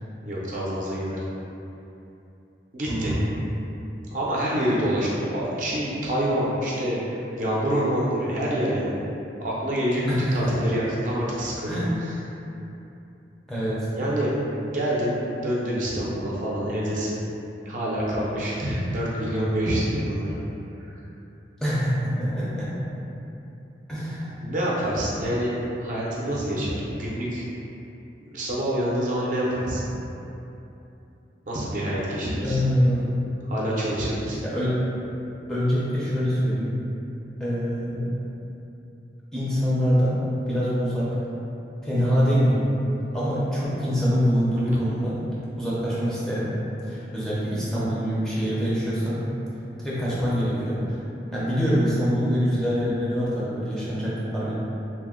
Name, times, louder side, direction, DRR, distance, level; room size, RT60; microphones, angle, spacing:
voice 1, 0.2-1.2 2.7-3.2 4.1-9.0 9.4-12.1 13.9-14.3 14.7-15.1 15.4-17.2 17.7-20.3 20.8-20.9 24.4-25.5 25.8-27.4 28.3-30.0 31.5-32.6 33.4-34.4, equal, 45° right, -6 dB, 0.5 m, -26 dB
voice 2, 2.9-3.2 10.1-10.5 11.7-11.9 13.5-13.9 21.6-22.7 23.9-24.3 32.4-33.1 34.4-34.7 35.5-36.7 37.4-38.0 39.3-40.2 40.5-41.1 41.8-42.6 43.1-45.2 45.6-46.5 46.8-49.2 49.8-51.0 51.3-54.5, equal, 5° left, -10 dB, 0.5 m, -24 dB
2.8 x 2.0 x 3.6 m, 2.9 s
head